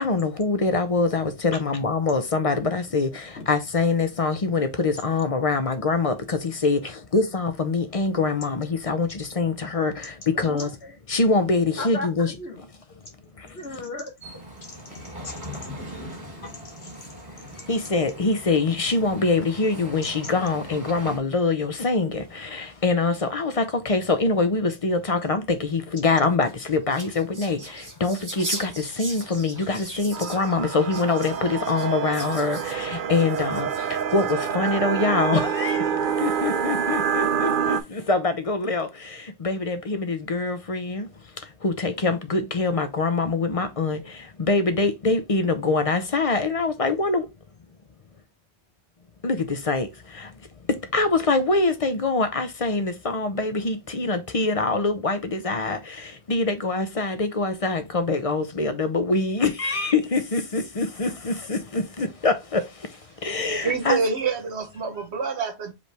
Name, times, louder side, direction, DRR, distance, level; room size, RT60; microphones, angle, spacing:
voice 1, 0.0-10.7 11.1-12.3 13.4-13.5 17.7-35.9 36.2-41.1 41.6-47.3 49.2-50.3 50.7-62.9 63.2-64.0, left 3 dB, 40° left, 0.7 m, -24 dB
voice 2, 10.4-10.9 11.8-12.6 13.0-14.1 14.6-15.3 16.4-17.0, left 2 dB, 75° left, 1.4 m, -37 dB
sound 1, 14.2-21.2, equal, 15° left, 2.7 m, -40 dB
sound 2, 26.3-34.7 35.3-35.9, right 2 dB, 20° right, 1.0 m, -39 dB
sound 3, 30.1-37.8, right 7 dB, 55° right, 0.7 m, -27 dB
voice 3, 63.6-65.7, right 5 dB, 85° right, 1.3 m, -26 dB
5.0 x 3.2 x 3.3 m
omnidirectional pair, 1.1 m